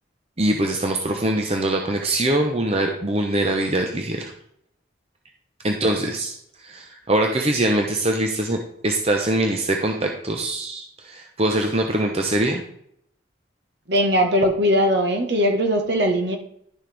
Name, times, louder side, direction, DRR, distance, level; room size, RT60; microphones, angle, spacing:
voice 1, 0.4-4.3 5.6-6.4 6.6-12.6, right 1 dB, 30° right, 2 dB, 0.8 m, -23 dB
voice 2, 13.9-16.4, equal, 60° right, 4 dB, 1.4 m, -20 dB
11.0 x 6.5 x 3.4 m, 0.69 s
head